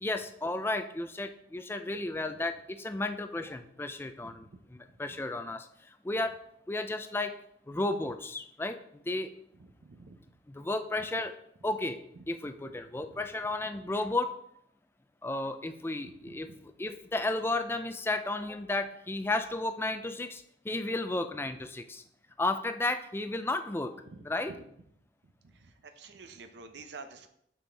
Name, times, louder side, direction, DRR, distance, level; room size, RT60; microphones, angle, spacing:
voice 1, 0.0-4.4 5.0-5.7 6.0-6.3 6.7-7.3 7.7-8.8 9.1-9.3 10.5-11.3 11.6-12.0 12.3-14.3 15.2-22.0 22.4-24.0 24.2-24.5, left 2 dB, 15° left, 9 dB, 0.4 m, -33 dB
voice 2, 4.2-4.6 9.6-10.2 12.2-12.3 13.0-13.3 16.2-16.6 24.1-24.6 25.4-27.3, right 3 dB, 70° right, 7 dB, 0.6 m, -49 dB
6.9 x 6.1 x 3.4 m, 0.72 s
head